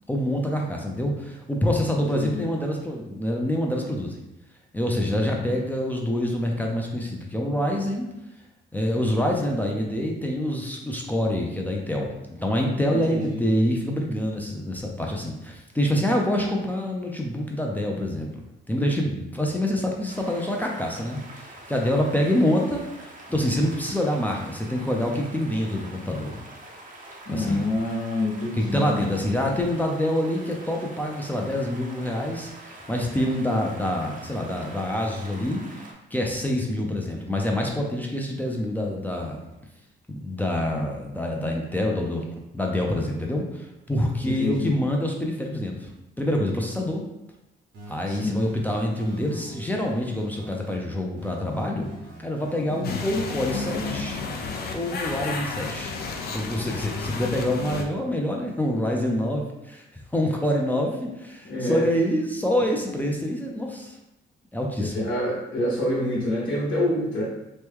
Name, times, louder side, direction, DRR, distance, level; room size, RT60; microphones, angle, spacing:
voice 1, 0.1-4.2 4.7-8.1 8.7-18.3 18.7-26.4 27.3-27.6 28.6-39.5 40.1-42.2 42.5-45.9 46.2-47.0 47.9-51.9 52.2-54.2 54.7-56.0 56.3-64.0 64.5-64.9, left 1 dB, 10° left, 0 dB, 0.5 m, -26 dB
voice 2, 2.1-2.4 5.0-5.5 12.9-13.4 27.3-29.1 44.2-44.7 48.1-48.4 52.7-53.0 61.4-61.9 64.8-67.2, left 1 dB, 70° left, -7 dB, 1.0 m, -27 dB
sound 1, 20.1-35.9, right 1 dB, 40° right, 0.7 m, -45 dB
sound 2, 47.7-50.8 51.2-54.2, right 1 dB, 75° right, 1.1 m, -45 dB
sound 3, 52.8-57.8, left 4 dB, 55° left, 0.5 m, -32 dB
3.0 x 2.2 x 3.5 m, 0.90 s
cardioid pair, 90°, 20 cm